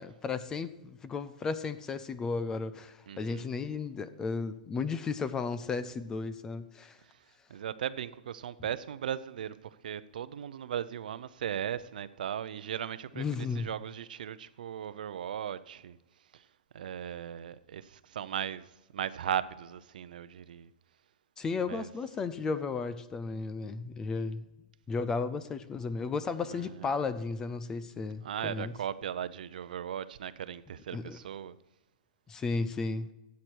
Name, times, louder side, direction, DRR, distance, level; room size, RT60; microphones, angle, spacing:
voice 1, 0.0-7.0 13.2-13.7 21.4-24.4 24.9-28.7 30.9-31.2 32.3-33.1, left 4 dB, 15° left, 0.4 m, -34 dB
voice 2, 3.1-3.5 7.0-7.2 7.5-16.0 16.3-16.5 16.7-20.7 21.6-21.9 26.4-26.9 28.2-31.6, right 9 dB, 80° right, 0.6 m, -37 dB
13.5 x 8.5 x 4.6 m
hypercardioid pair, 160°, 5 cm